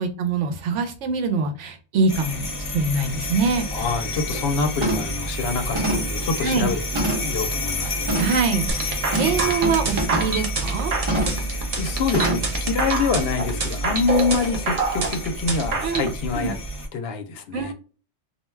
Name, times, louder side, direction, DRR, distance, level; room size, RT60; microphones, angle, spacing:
voice 1, 0.0-3.6 6.4-6.7 8.2-10.9 15.8-16.1 16.3-16.5 17.5-17.7, right 4 dB, 90° right, 1.0 m, -24 dB
sound 1, 2.1-16.9, equal, 30° left, 0.8 m, -29 dB
sound 2, 3.0-3.1 3.5-3.8 4.2-4.5 4.8-5.2 5.8-7.4 8.1-8.4 9.1-10.4 11.1-11.5 12.1-12.6 13.0-13.1, right 1 dB, 30° right, 0.9 m, -27 dB
voice 2, 3.7-8.1 11.5-16.6 16.9-17.7, left 5 dB, 65° left, 0.7 m, -26 dB
sound 3, 8.7-16.1, right 4 dB, 45° right, 0.5 m, -26 dB
2.3 x 2.2 x 3.1 m
omnidirectional pair, 1.2 m